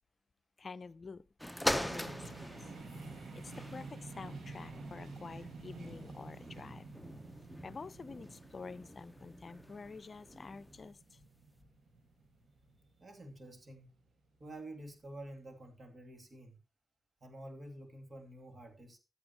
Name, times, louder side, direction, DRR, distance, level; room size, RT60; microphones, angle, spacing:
voice 1, 0.6-1.2 1.8-2.7 3.4-6.9 7.6-11.2, left 4 dB, 55° left, 0.5 m, -48 dB
sound 1, 1.4-10.9 11.6-11.7, equal, ahead, 0.9 m, -43 dB
sound 2, 1.8-13.6, right 3 dB, 75° right, 1.8 m, -50 dB
voice 2, 13.0-14.0 14.4-16.6 17.2-19.0, right 1 dB, 50° right, 2.7 m, -49 dB
13.0 x 8.7 x 2.9 m
supercardioid pair, 40°, 0 cm